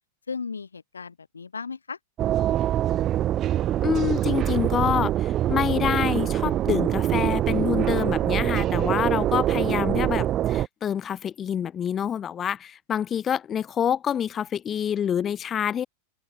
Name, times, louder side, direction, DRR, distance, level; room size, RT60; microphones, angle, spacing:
voice 1, 0.3-2.0, left 5 dB, 75° left, 7.5 m, -36 dB
sound 1, 2.2-10.7, right 12 dB, 30° right, 0.6 m, -24 dB
voice 2, 3.8-15.9, left 9 dB, 25° left, 1.3 m, -27 dB
open air
figure-of-eight pair, 90°, 0 cm